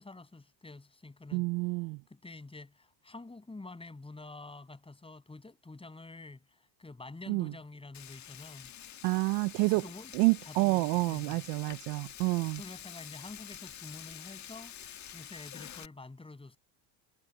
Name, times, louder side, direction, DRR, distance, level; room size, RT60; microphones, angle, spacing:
voice 1, 0.0-1.5 2.1-8.7 9.7-10.1 10.4-11.4 12.4-14.7 15.1-16.6, left 3 dB, 10° left, 7.9 m, -48 dB
voice 2, 1.3-2.0 7.3-7.5 9.0-9.8 10.1-12.6, right 24 dB, 70° right, 0.8 m, -28 dB
Frying (food), 7.9-15.9, left 10 dB, 40° left, 1.7 m, -48 dB
supercardioid pair, 100°, 44 cm